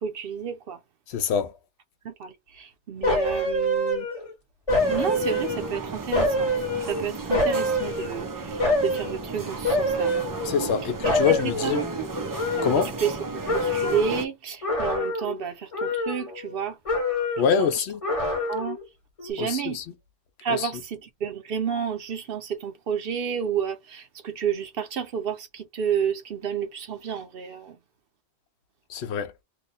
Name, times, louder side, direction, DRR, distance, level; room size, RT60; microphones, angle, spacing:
voice 1, 0.0-0.8 2.0-4.1 4.9-6.5 6.8-10.1 11.0-12.1 12.5-12.6 13.0-16.8 17.6-17.7 18.5-18.8 19.2-19.8 20.4-27.8, right 7 dB, 65° right, 0.8 m, -31 dB
voice 2, 1.1-1.6 10.4-11.8 12.6-13.0 17.4-18.0 19.4-19.8 20.5-20.7 28.9-29.3, left 7 dB, 75° left, 0.9 m, -25 dB
sound 1, 3.0-4.3 4.7-5.8 6.1-8.2 8.6-9.2 9.6-10.8 11.0-13.2 13.5-14.1 14.6-15.4 15.7-16.6 16.8-17.6 18.0-18.8 19.2-19.3, left 1 dB, 35° left, 0.9 m, -26 dB
sound 2, 4.7-14.3, right 3 dB, 30° right, 0.4 m, -34 dB
2.8 x 2.2 x 3.8 m
omnidirectional pair, 1.1 m